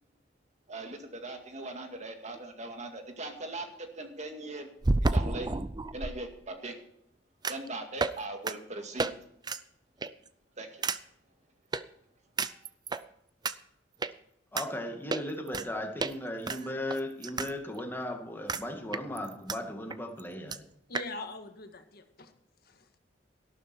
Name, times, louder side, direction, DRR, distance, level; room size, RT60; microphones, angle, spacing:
voice 1, 0.7-4.7 5.1-5.5 5.9-6.8 7.5-9.1 10.6-10.9, right 2 dB, 40° right, 5 dB, 2.2 m, -40 dB
sound 1, 2.3-2.4 4.8-6.1 7.4-7.7 8.0-8.2 8.5-8.6 9.0-9.1 9.4-9.6 10.0-10.3 10.8-11.0 11.7-11.8 12.4-13.0 13.4-13.5 14.0-14.1 14.6-14.7 15.1-15.7 16.0-16.1 16.5-17.5 17.8-17.9 18.5-18.6 18.9-19.6 19.9-20.0 20.2-20.3 20.5-20.6 20.9-21.1, right 3 dB, 20° right, 0.5 m, -30 dB
voice 2, 14.5-20.7, left 1 dB, 10° left, 3 dB, 2.2 m, -37 dB
voice 3, 20.9-22.3 22.6-23.0, left 2 dB, 55° left, 7 dB, 1.7 m, -43 dB
13.5 x 12.0 x 4.6 m, 0.77 s
head